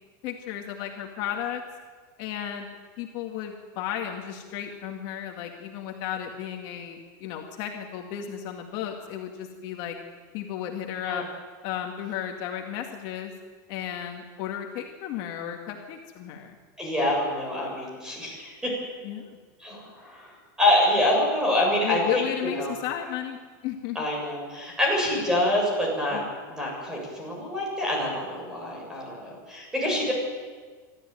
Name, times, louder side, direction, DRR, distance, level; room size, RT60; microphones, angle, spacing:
voice 1, 0.2-1.6 2.2-2.7 3.0-10.0 10.3-11.2 11.6-13.3 13.7-16.6 19.0-19.4 21.8-23.4 23.6-24.0 26.1-26.2, left 10 dB, 50° left, 2 dB, 2.1 m, -34 dB
voice 2, 16.8-18.7 19.6-20.3 20.6-22.7 23.9-26.2 26.5-30.1, left 1 dB, 5° right, -2 dB, 7.4 m, -26 dB
25.5 x 13.5 x 9.3 m, 1.5 s
supercardioid pair, 155°, 10 cm